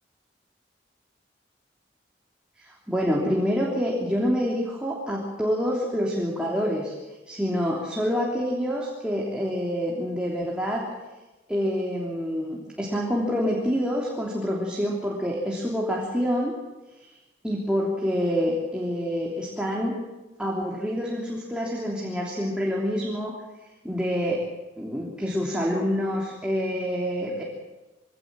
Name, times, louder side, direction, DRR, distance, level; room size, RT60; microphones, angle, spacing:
voice 1, 2.6-6.9 7.3-10.9 11.5-16.5 17.0-17.1 17.4-20.0 20.4-23.3 23.8-24.4 24.8-27.4, equal, 5° right, -3 dB, 3.2 m, -27 dB
23.5 x 18.0 x 7.6 m, 1.1 s
head